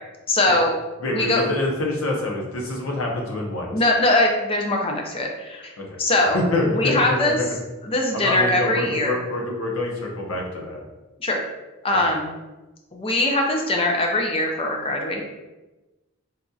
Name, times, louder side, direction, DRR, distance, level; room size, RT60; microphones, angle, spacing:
voice 1, 0.3-0.8 1.1-1.5 3.7-5.7 6.0-6.4 6.7-7.4 7.8-9.2 11.2-11.4 11.8-12.3 12.9-15.2, left 2 dB, 25° left, 1 dB, 0.4 m, -21 dB
voice 2, 1.0-3.7 5.8-6.0 6.3-7.5 8.1-10.8, left 2 dB, 75° left, -1 dB, 0.7 m, -26 dB
4.0 x 2.6 x 2.3 m, 1.1 s
head